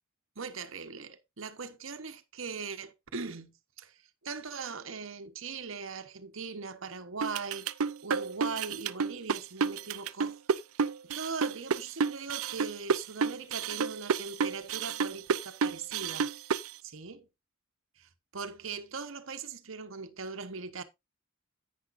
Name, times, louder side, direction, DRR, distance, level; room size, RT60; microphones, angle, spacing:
voice 1, 0.4-4.0 4.2-7.7 8.0-10.4 11.1-16.3 16.8-17.2 18.0-20.8, right 5 dB, 65° right, 1.1 m, -40 dB
sound 1, 7.2-16.7, right 5 dB, 80° right, 0.5 m, -30 dB
10.0 x 9.3 x 2.6 m
head